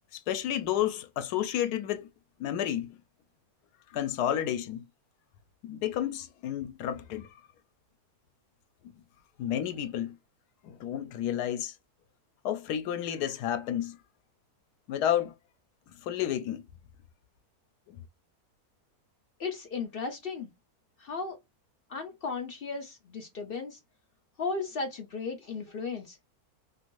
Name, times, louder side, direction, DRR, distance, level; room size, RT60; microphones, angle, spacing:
voice 1, 0.1-2.1 2.4-3.0 3.9-4.8 5.6-7.3 9.4-10.1 10.6-11.7 12.4-14.0 14.9-15.3 16.0-16.6 17.9-18.0, left 10 dB, 85° left, 1.1 m, -31 dB
voice 2, 19.4-20.5 21.0-21.4 21.9-23.8 24.4-26.2, left 4 dB, 65° left, 0.5 m, -35 dB
2.9 x 2.5 x 2.9 m
omnidirectional pair, 1.6 m